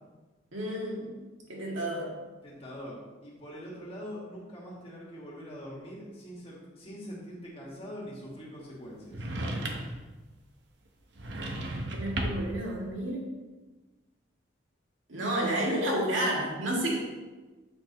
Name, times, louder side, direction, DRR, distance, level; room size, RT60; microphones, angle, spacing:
voice 1, 0.5-1.2 1.5-2.2 11.4-11.5 11.7-13.3 15.1-17.0, right 1 dB, 80° right, -3 dB, 2.0 m, -31 dB
voice 2, 2.4-9.3, equal, 30° left, -4 dB, 1.9 m, -43 dB
sound 1, 9.1-10.0 11.1-12.6, right 1 dB, 65° right, 0.9 m, -34 dB
8.0 x 6.5 x 3.0 m, 1.2 s
head